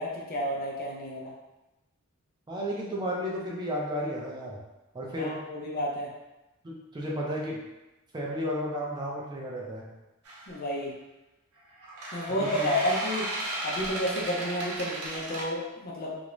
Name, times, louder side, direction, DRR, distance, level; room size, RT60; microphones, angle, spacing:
voice 1, 0.0-1.3 5.2-6.1 10.5-10.9 12.1-13.3 13.6-16.2, equal, 45° left, -2 dB, 0.5 m, -31 dB
voice 2, 2.5-4.6 4.9-5.4 6.6-7.6 8.1-9.9 12.3-12.7, equal, 20° right, -3 dB, 0.4 m, -33 dB
sound 1, 10.2-10.5 11.8-15.4, right 1 dB, 90° right, 0.6 m, -35 dB
2.4 x 2.0 x 3.0 m, 1.0 s
head